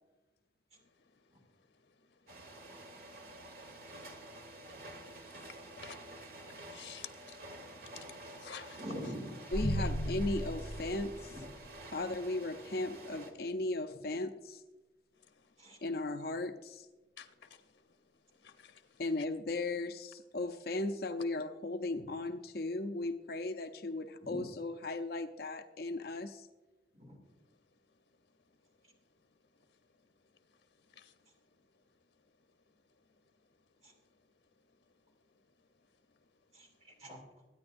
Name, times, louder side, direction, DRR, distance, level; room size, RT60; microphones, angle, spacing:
voice 1, 0.8-1.2 1.9-2.0 3.9-4.0 5.2-6.1 6.4-7.4 7.9-8.1 8.4-8.8 9.8-9.9 15.2-15.5 17.2-17.8 18.4-19.0 30.9-31.1, left 7 dB, 85° left, 0.9 m, -52 dB
sound 1, 2.3-13.3, right 1 dB, 55° right, 1.6 m, -50 dB
voice 2, 8.8-9.3 11.3-11.4 15.6-15.8 24.2-24.4 26.9-27.2 33.8-33.9 36.5-37.2, equal, 40° right, 2.7 m, -44 dB
voice 3, 9.5-11.3 11.9-14.6 15.8-16.9 19.0-26.5, left 2 dB, 60° left, 0.6 m, -36 dB
sound 2, 9.5-11.8, equal, 40° left, 4.2 m, -36 dB
22.5 x 9.7 x 2.6 m
head